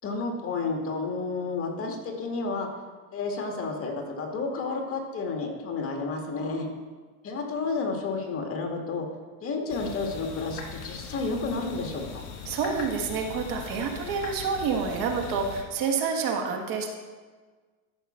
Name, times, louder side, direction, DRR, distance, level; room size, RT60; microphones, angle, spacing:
voice 1, 0.0-2.7 3.1-6.7 7.2-9.1 9.4-12.2, left 3 dB, 30° left, 2 dB, 2.0 m, -31 dB
sound 1, 9.7-15.6, left 6 dB, 60° left, 2.1 m, -40 dB
voice 2, 12.5-16.9, right 5 dB, 50° right, 3 dB, 1.7 m, -28 dB
13.5 x 6.2 x 4.4 m, 1.4 s
supercardioid pair, 110°, 43 cm